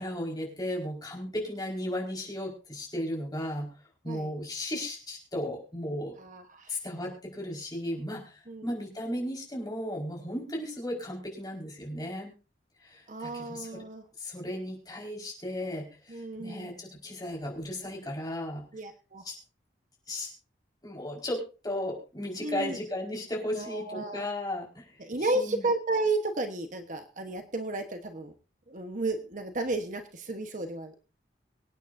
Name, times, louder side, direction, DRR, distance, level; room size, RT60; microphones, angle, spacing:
voice 1, 0.0-3.7 4.0-6.2 6.7-12.3 12.8-13.8 14.2-18.7 19.2-19.4 20.1-20.3 20.8-25.7, left 1 dB, 20° left, -1 dB, 4.8 m, -35 dB
voice 2, 6.2-6.8 8.5-8.7 13.1-14.0 16.1-16.7 18.7-19.2 22.4-22.8 23.5-24.2 25.0-28.3 28.7-31.0, right 2 dB, 45° right, 6 dB, 1.1 m, -33 dB
25.0 x 9.3 x 2.7 m, 0.33 s
head